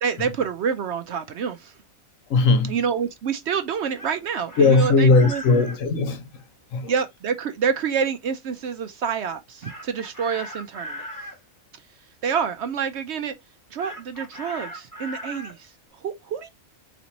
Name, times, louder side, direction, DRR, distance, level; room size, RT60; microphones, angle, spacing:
voice 1, 0.0-1.7 2.7-5.4 6.9-11.1 12.2-13.4 13.7-16.5, right 6 dB, 65° right, 0.8 m, -27 dB
voice 2, 2.3-2.8 4.6-6.4 6.7-6.9, left 3 dB, 70° left, 1.1 m, -19 dB
Chicken rooster, 4.0-5.8 9.6-11.4 13.8-15.6, equal, 15° left, 1.3 m, -38 dB
4.0 x 3.3 x 2.8 m
omnidirectional pair, 1.4 m